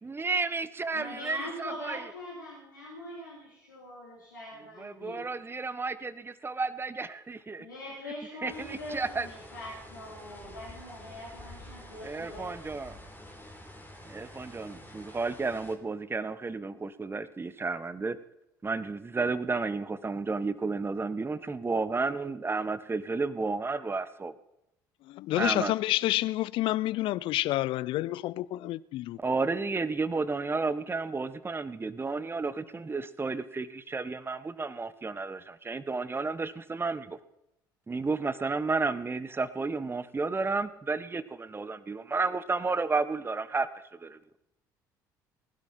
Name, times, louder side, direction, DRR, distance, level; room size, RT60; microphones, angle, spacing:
voice 1, 0.0-2.0 4.8-7.6 8.4-9.3 12.0-12.9 14.1-18.2 18.6-24.3 25.4-25.7 29.2-37.2 37.9-43.7 44.0-44.2, right 4 dB, 25° right, 1.3 m, -32 dB
voice 2, 0.9-5.2 7.6-12.6, left 1 dB, 90° left, 4.0 m, -43 dB
sound 1, 8.5-15.8, left 1 dB, 20° left, 4.1 m, -48 dB
voice 3, 25.1-29.2, left 16 dB, 60° left, 0.4 m, -29 dB
20.0 x 12.0 x 4.5 m
hypercardioid pair, 55°, 10 cm